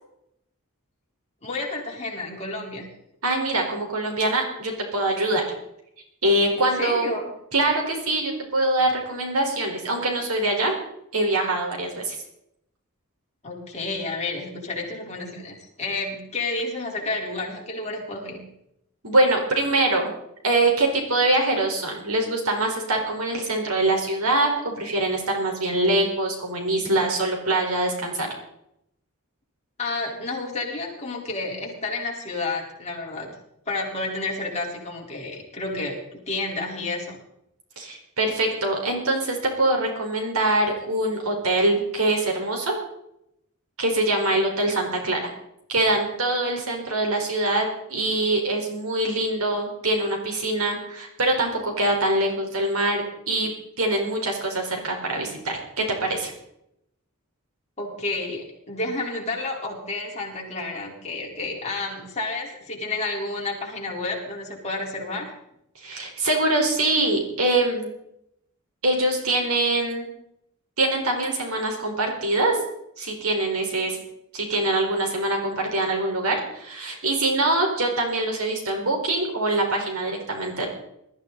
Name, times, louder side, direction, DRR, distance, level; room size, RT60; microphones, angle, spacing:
voice 1, 1.4-2.9 6.6-7.3 13.4-18.4 29.8-33.3 33.7-37.2 57.8-65.3, left 2 dB, 30° left, -2 dB, 4.1 m, -30 dB
voice 2, 3.2-5.4 6.2-7.1 7.5-10.8 11.1-12.2 19.0-20.1 20.4-28.3 37.8-42.7 43.8-45.2 45.7-53.5 53.8-56.3 65.8-67.9 68.8-70.1 70.8-72.6 73.0-74.0 74.3-80.7, right 2 dB, 85° right, 1 dB, 4.6 m, -24 dB
21.0 x 14.0 x 4.1 m, 0.78 s
head